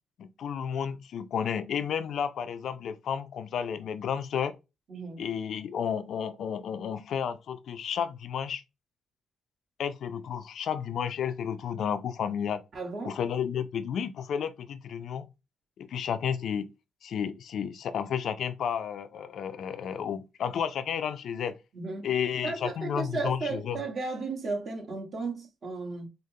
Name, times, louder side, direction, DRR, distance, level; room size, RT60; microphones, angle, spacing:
voice 1, 0.2-4.5 5.2-8.6 9.8-12.6 13.0-15.3 15.8-16.7 17.0-21.5 22.0-23.8, left 8 dB, 65° left, 0.3 m, -32 dB
voice 2, 4.9-5.2 12.7-13.2 21.7-22.1 22.4-26.1, right 3 dB, 50° right, 1.3 m, -34 dB
4.9 x 2.0 x 2.7 m
cardioid pair, 90°, 0 cm